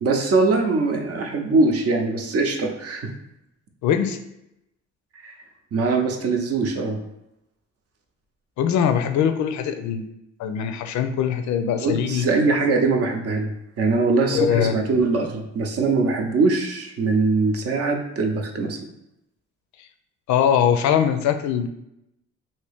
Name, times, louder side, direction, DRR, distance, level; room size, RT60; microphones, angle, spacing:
voice 1, 0.0-3.0 5.2-5.3 5.7-7.0 11.8-13.5 13.8-18.8, right 3 dB, 55° right, 3 dB, 0.7 m, -22 dB
voice 2, 3.8-4.2 8.6-10.1 10.4-12.3 14.3-14.8 20.3-21.7, left 8 dB, 70° left, 7 dB, 0.4 m, -21 dB
2.8 x 2.7 x 3.4 m, 0.84 s
cardioid pair, 90°, 30 cm